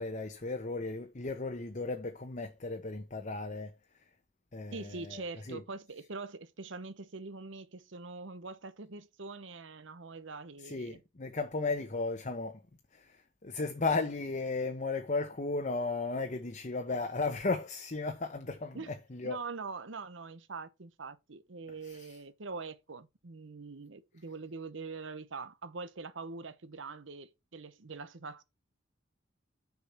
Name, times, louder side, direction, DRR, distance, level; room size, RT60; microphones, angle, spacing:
voice 1, 0.0-4.0 4.5-5.6 10.6-12.6 12.9-19.4 21.8-22.2, left 3 dB, 40° left, 0.9 m, -35 dB
voice 2, 4.7-11.0 18.7-18.9 19.2-28.4, right 4 dB, 80° right, 1.0 m, -43 dB
6.6 x 4.9 x 5.9 m
head